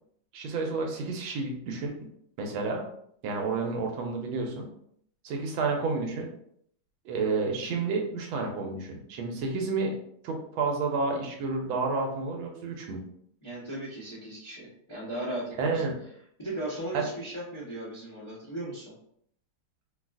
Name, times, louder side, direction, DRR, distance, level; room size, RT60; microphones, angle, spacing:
voice 1, 0.3-2.1 2.4-2.8 3.2-4.7 5.2-6.3 7.0-10.0 10.2-13.0 15.6-16.0 16.9-17.1, right 4 dB, 80° right, 2 dB, 1.4 m, -30 dB
voice 2, 13.4-15.8 16.4-19.0, right 1 dB, 50° left, -8 dB, 0.3 m, -37 dB
3.9 x 2.4 x 2.3 m, 0.68 s
omnidirectional pair, 2.2 m